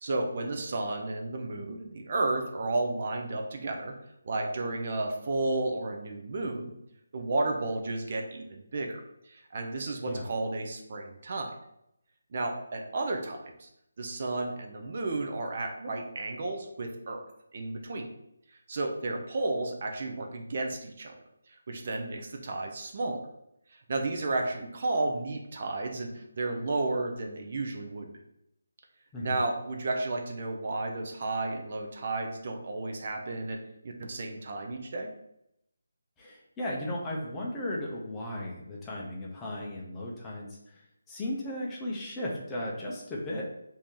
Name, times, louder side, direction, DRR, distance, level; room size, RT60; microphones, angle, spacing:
voice 1, 0.0-3.9 4.2-6.7 7.1-9.0 9.3-11.5 12.3-13.7 14.0-17.2 17.5-18.1 18.7-21.1 21.7-23.2 23.7-28.1 29.2-33.6 33.8-35.1, right 2 dB, 45° right, 2 dB, 0.5 m, -32 dB
voice 2, 36.2-40.8 41.1-43.4, left 1 dB, 10° left, -4 dB, 0.6 m, -36 dB
2.9 x 2.6 x 3.6 m, 0.78 s
figure-of-eight pair, 165°, 0 cm